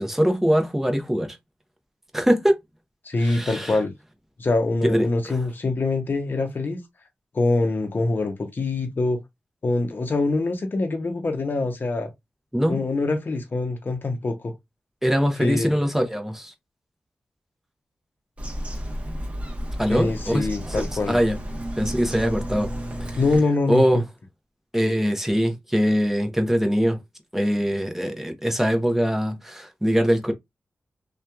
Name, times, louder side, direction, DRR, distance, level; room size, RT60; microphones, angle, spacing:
voice 1, 0.0-1.4 2.1-2.6 3.2-3.7 4.8-5.0 12.5-12.8 15.0-16.5 19.8-20.5 21.1-21.4 21.8-22.7 23.7-24.0 24.7-27.0 27.3-30.3, equal, 5° right, 0.7 m, -22 dB
voice 2, 3.0-3.9 4.4-6.8 7.3-9.2 9.6-12.1 12.7-14.5 15.4-15.8 19.9-21.2 23.2-24.0, left 3 dB, 50° left, 0.7 m, -24 dB
Bird vocalization bird call bird song, 18.4-23.4, equal, 30° right, 0.9 m, -32 dB
2.8 x 2.3 x 2.2 m
cardioid pair, 55°, 4 cm